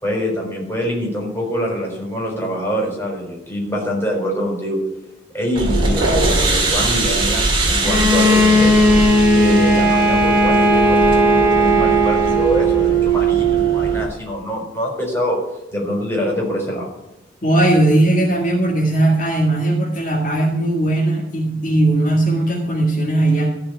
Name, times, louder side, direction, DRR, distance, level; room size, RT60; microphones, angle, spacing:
voice 1, 0.0-4.8 5.3-8.9 9.3-15.4 15.7-16.9, equal, 10° left, -1 dB, 4.2 m, -24 dB
sound 1, 5.5-14.0, right 5 dB, 25° right, 2.6 m, -20 dB
Bowed string instrument, 7.8-13.0, equal, 10° right, 1.9 m, -16 dB
voice 2, 17.4-23.5, right 1 dB, 45° left, -2 dB, 1.9 m, -18 dB
15.0 x 5.1 x 9.3 m, 0.92 s
head